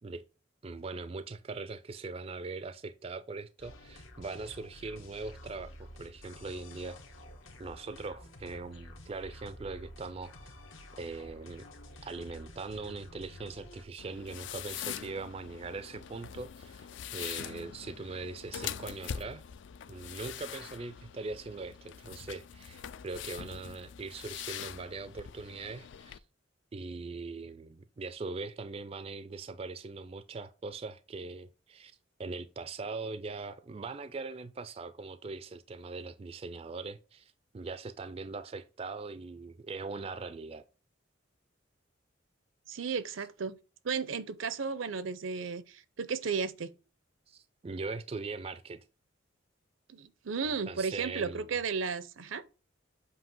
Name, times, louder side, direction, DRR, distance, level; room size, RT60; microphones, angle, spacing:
voice 1, 0.6-7.0 7.6-10.5 11.0-11.7 12.0-16.9 17.1-19.4 19.9-26.2 26.7-31.9 32.2-40.6 47.3-48.8 50.4-51.5, right 3 dB, 30° right, 0.3 m, -41 dB
sound 1, 3.6-13.8, left 1 dB, 80° left, 1.4 m, -50 dB
sound 2, 14.0-26.2, left 9 dB, 60° left, 0.4 m, -43 dB
voice 2, 42.7-43.6 43.8-46.7 49.9-52.4, right 5 dB, 80° right, 0.6 m, -34 dB
7.7 x 2.8 x 5.3 m
head